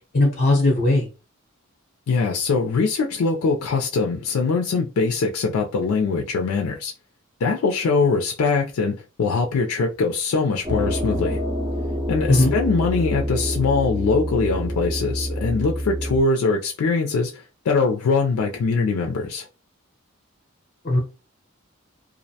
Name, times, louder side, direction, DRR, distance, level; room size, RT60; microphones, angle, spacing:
voice 1, 0.1-1.1 12.3-12.5 20.8-21.0, left 2 dB, 45° left, 0.7 m, -18 dB
voice 2, 2.1-6.9 7.4-11.4 12.1-19.5, left 4 dB, 90° left, 0.4 m, -22 dB
sound 1, 10.6-16.2, equal, 15° right, 0.8 m, -27 dB
2.5 x 2.1 x 2.7 m
head